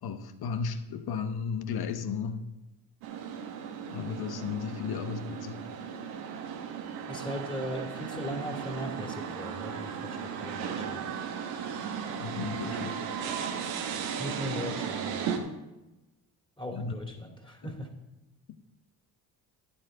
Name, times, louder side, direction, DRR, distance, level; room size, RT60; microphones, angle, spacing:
voice 1, 0.0-2.5 3.9-5.6 12.2-13.0 16.7-17.0 17.6-17.7, left 6 dB, 55° left, 1.1 m, -34 dB
sound 1, 3.0-15.4, right 7 dB, 85° right, 1.2 m, -36 dB
voice 2, 7.1-11.0 14.2-15.4 16.6-17.9, left 1 dB, 10° left, 2.6 m, -38 dB
11.0 x 9.5 x 3.8 m
hypercardioid pair, 50°, 43 cm